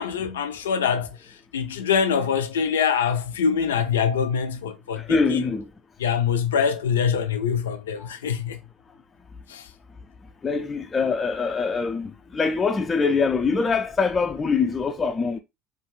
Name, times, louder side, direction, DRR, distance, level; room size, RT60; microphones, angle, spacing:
voice 1, 0.0-5.5 6.0-8.6 9.5-9.7, left 7 dB, 85° left, 0.5 m, -24 dB
voice 2, 5.0-5.7 8.0-8.1 10.4-15.4, left 4 dB, 25° left, 0.4 m, -24 dB
2.5 x 2.3 x 3.0 m
hypercardioid pair, 80°, 0 cm